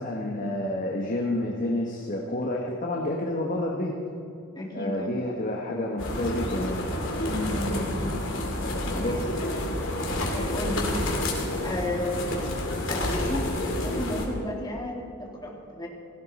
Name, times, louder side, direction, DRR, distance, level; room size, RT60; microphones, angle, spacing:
voice 1, 0.0-3.9 4.7-6.8 8.6-9.3 10.0-10.2, left 1 dB, 40° left, -1 dB, 1.3 m, -29 dB
voice 2, 4.5-5.1 7.3-8.2 9.0-9.2 10.3-11.0 11.6-12.5 12.9-15.9, left 1 dB, 20° left, -1 dB, 2.5 m, -32 dB
sound 1, 6.0-14.3, left 1 dB, 65° left, 2.6 m, -29 dB
17.0 x 15.0 x 4.3 m, 2.8 s
head